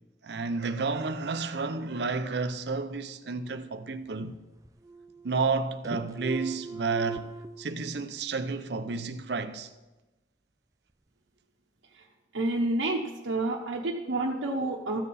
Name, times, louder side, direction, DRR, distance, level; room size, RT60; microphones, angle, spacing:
voice 1, 0.2-4.4 5.2-7.3 7.6-9.7, right 4 dB, 60° right, 0.6 m, -31 dB
sound 1, 3.4-4.3 4.6-5.6 5.8-7.5, right 4 dB, 15° right, 0.4 m, -40 dB
voice 2, 12.3-15.0, right 2 dB, 90° right, 0.9 m, -29 dB
14.0 x 7.4 x 4.2 m
head